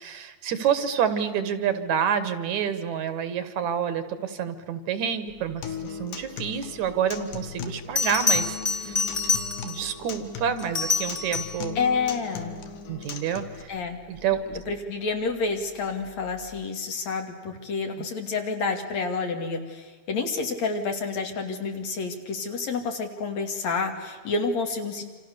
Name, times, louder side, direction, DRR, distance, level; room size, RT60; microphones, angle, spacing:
voice 1, 0.0-9.0 9.6-11.8 12.9-13.7 14.1-14.6 18.0-18.1, right 8 dB, 70° right, 11 dB, 2.6 m, -28 dB
Acoustic guitar, 5.6-13.6, left 7 dB, 90° left, 3.1 m, -38 dB
Bell, 7.3-7.4 8.0-9.9 10.6-11.7 14.3-14.6, left 4 dB, 20° left, 1.8 m, -27 dB
voice 2, 11.8-12.6 13.7-14.0 14.7-25.2, left 4 dB, 60° left, 4 dB, 3.5 m, -29 dB
28.5 x 27.0 x 6.8 m, 1.3 s
omnidirectional pair, 3.5 m